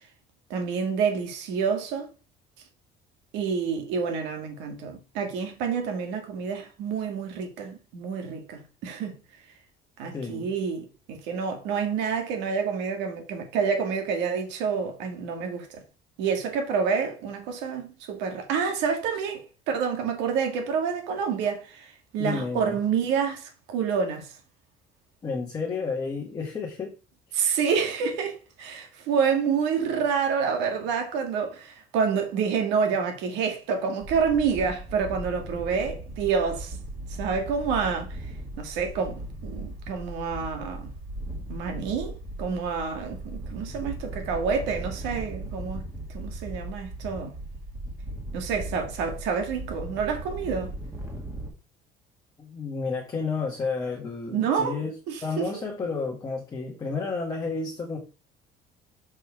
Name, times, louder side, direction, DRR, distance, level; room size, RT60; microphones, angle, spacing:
voice 1, 0.5-2.1 3.3-9.2 10.0-15.8 16.2-24.4 27.3-36.8 37.1-40.9 41.5-45.9 46.1-47.4 48.3-50.7 54.3-54.8 55.1-55.5, right 6 dB, 80° right, 2.0 m, -28 dB
voice 2, 10.1-10.5 22.2-22.8 25.2-26.9 27.3-27.6 52.4-54.9 55.2-58.0, left 4 dB, 20° left, 1.3 m, -31 dB
sound 1, 34.0-51.5, right 1 dB, 15° right, 1.8 m, -38 dB
6.0 x 5.4 x 4.7 m
cardioid pair, 160°, 18 cm